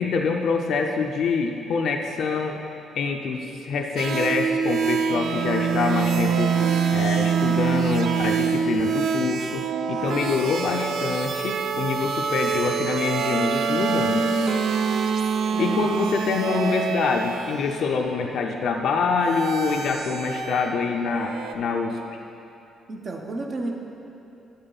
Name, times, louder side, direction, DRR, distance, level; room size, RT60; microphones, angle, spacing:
voice 1, 0.0-14.3 15.6-22.0, left 5 dB, 70° left, 3 dB, 0.5 m, -25 dB
sound 1, 4.0-17.6 19.2-20.7 21.1-21.5, right 6 dB, 70° right, 0.5 m, -25 dB
voice 2, 15.5-15.9 22.9-23.7, right 2 dB, 45° right, 2 dB, 1.0 m, -32 dB
8.6 x 7.8 x 4.0 m, 2.8 s
cardioid pair, 90°, 0 cm